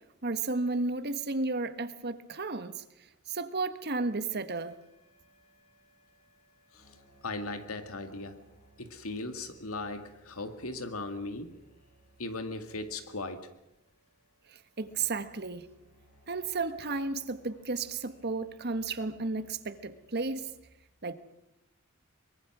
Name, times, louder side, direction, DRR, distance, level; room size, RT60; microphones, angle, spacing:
voice 1, 0.2-2.7 3.3-4.7 14.8-15.6 16.3-20.4 21.0-21.1, right 3 dB, 50° right, 11 dB, 1.4 m, -33 dB
sound 1, 4.6-20.6, right 1 dB, 35° left, 7.9 m, -63 dB
voice 2, 7.2-8.4 8.8-11.6 12.2-13.5, left 2 dB, 90° left, 8 dB, 2.2 m, -38 dB
23.5 x 22.0 x 6.2 m, 0.89 s
head